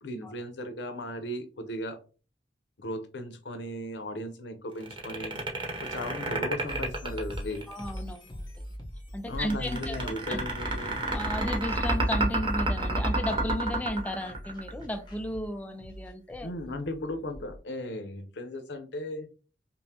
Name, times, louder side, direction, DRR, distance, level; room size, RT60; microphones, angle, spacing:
voice 1, 0.0-2.0 2.8-5.4 5.8-7.6 9.3-11.0 16.4-19.3, left 1 dB, 85° left, 0.7 m, -36 dB
sound 1, 4.8-8.0 9.4-14.9, right 2 dB, 30° right, 0.9 m, -29 dB
sound 2, 6.7-17.6, equal, 25° left, 1.0 m, -42 dB
voice 2, 7.7-8.4 9.1-10.4 11.1-16.5, equal, 10° left, 0.3 m, -34 dB
5.3 x 2.1 x 2.8 m
head